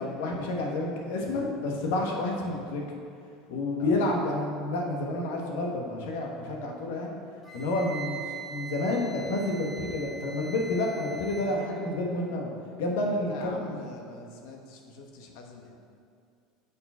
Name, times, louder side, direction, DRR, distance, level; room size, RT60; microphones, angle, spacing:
voice 1, 0.0-2.8 3.5-7.2 7.5-8.2 8.5-12.5 12.8-13.8, left 2 dB, 80° left, 0 dB, 1.3 m, -29 dB
voice 2, 3.8-4.1 13.0-15.8, left 3 dB, 65° left, 2 dB, 1.1 m, -44 dB
Wind instrument woodwind instrument, 7.4-11.6, right 5 dB, 5° left, 1.6 m, -42 dB
6.8 x 4.8 x 5.5 m, 2.4 s
supercardioid pair, 140°, 0 cm